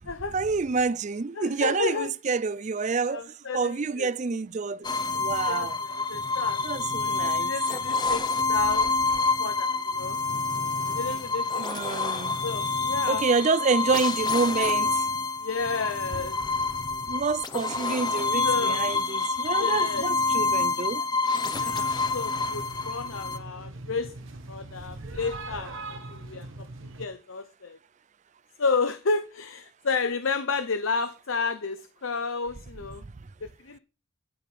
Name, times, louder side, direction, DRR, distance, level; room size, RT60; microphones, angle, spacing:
voice 1, 0.3-3.2 3.5-4.9 5.2-5.8 6.6-7.5 11.6-12.4 13.1-14.9 17.1-21.0 21.6-21.7, right 4 dB, 35° right, 0.4 m, -28 dB
voice 2, 1.4-2.1 3.1-4.1 5.4-6.6 7.1-8.9 9.4-10.2 10.9-12.2 12.4-13.3 15.4-16.4 18.4-18.9 19.6-20.1 21.6-24.1 24.5-26.7 27.0-27.8 28.6-33.0 33.4-33.8, left 4 dB, 75° left, 0.7 m, -32 dB
sound 1, 4.8-23.4, left 3 dB, 20° left, 0.7 m, -27 dB
sound 2, 21.5-27.1, right 2 dB, 70° right, 1.5 m, -41 dB
12.5 x 5.6 x 5.0 m
head